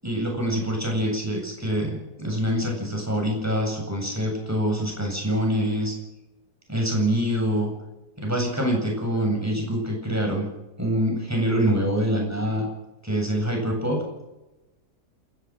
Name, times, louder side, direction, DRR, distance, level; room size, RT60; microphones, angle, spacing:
voice 1, 0.0-5.9 6.7-7.7 8.2-10.5 10.8-12.7 13.0-14.0, equal, 10° right, 0 dB, 7.9 m, -25 dB
29.5 x 13.5 x 6.4 m, 1.0 s
omnidirectional pair, 1.8 m